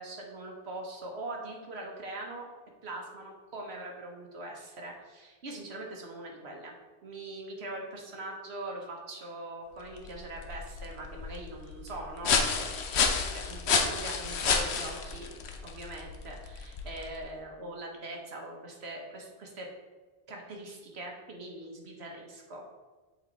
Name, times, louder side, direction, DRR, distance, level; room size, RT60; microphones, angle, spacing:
voice 1, 0.0-2.5 2.8-6.7 7.0-15.3 15.6-19.7 20.3-22.6, right 2 dB, 80° right, 0 dB, 1.5 m, -42 dB
sound 1, 9.8-17.2, left 5 dB, 85° left, 1.0 m, -31 dB
7.9 x 4.1 x 4.1 m, 1.3 s
omnidirectional pair, 1.1 m